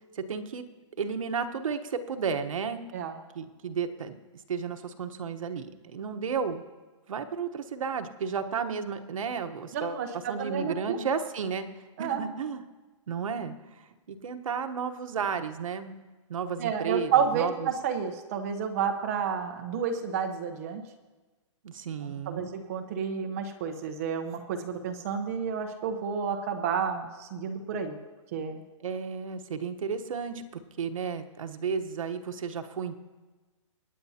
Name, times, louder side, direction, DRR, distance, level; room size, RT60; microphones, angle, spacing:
voice 1, 0.2-0.7 1.0-2.8 3.3-4.2 4.5-6.6 7.1-11.7 12.0-12.6 13.1-13.5 14.1-15.9 16.3-17.7 21.6-22.5 28.8-30.4 30.8-32.9, right 6 dB, 85° right, 7 dB, 1.1 m, -33 dB
voice 2, 9.7-11.0 12.0-12.2 16.6-20.8 22.0-28.0 28.3-28.6, right 7 dB, 30° right, 4 dB, 0.9 m, -30 dB
25.0 x 9.7 x 2.8 m, 1.3 s
hypercardioid pair, 175°, 17 cm